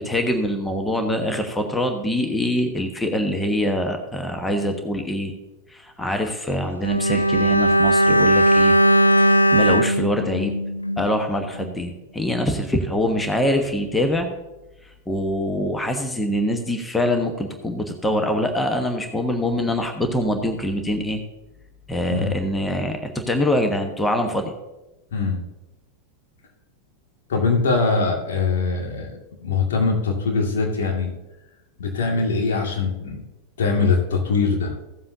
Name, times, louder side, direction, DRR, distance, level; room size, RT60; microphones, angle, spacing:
voice 1, 0.0-5.3 5.7-8.8 9.2-10.5 11.0-14.3 15.1-21.2 21.9-24.5, left 1 dB, 10° left, 5 dB, 1.2 m, -24 dB
Bowed string instrument, 6.8-11.3 11.5-11.7, equal, 80° left, 0.4 m, -18 dB
voice 2, 25.1-25.4 27.3-29.1 29.4-31.1 31.8-33.2 33.6-34.7, left 4 dB, 60° left, 1 dB, 2.2 m, -22 dB
16.0 x 7.6 x 2.8 m, 1.0 s
figure-of-eight pair, 90°, 0 cm